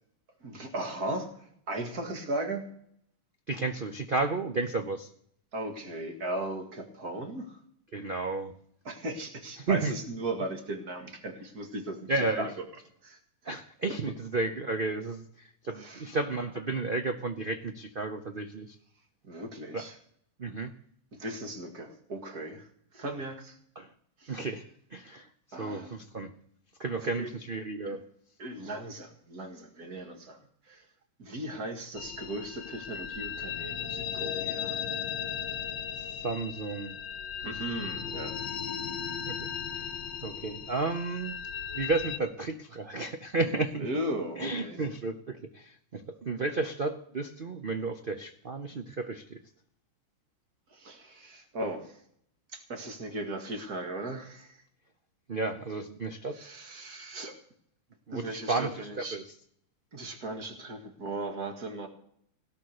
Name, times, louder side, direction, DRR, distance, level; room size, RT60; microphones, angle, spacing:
voice 1, 0.4-2.7 5.5-7.6 8.8-12.1 12.4-12.5 13.0-13.2 15.8-16.1 19.2-20.0 21.1-22.7 22.9-23.6 24.2-24.4 25.5-26.0 26.9-27.3 27.8-28.0 28.4-30.4 30.7-30.9 31.2-34.8 37.4-38.4 43.8-44.8 50.7-52.0 52.5-54.6 56.3-57.4 58.1-59.2 59.9-61.9, right 1 dB, 45° right, 5 dB, 2.4 m, -37 dB
voice 2, 3.5-5.1 7.9-8.5 9.6-9.9 12.1-12.5 13.4-18.7 19.7-19.9 20.4-20.7 23.8-23.9 24.3-24.6 24.9-25.3 25.6-26.3 26.8-28.0 36.0-37.0 39.3-39.4 39.7-39.8 40.2-41.4 41.7-43.9 44.4-49.4 55.3-56.4 58.1-59.2, right 3 dB, 90° right, 7 dB, 0.4 m, -32 dB
sound 1, 31.9-42.2, left 8 dB, 65° left, 1.5 m, -36 dB
17.0 x 10.0 x 6.6 m, 0.67 s
omnidirectional pair, 2.3 m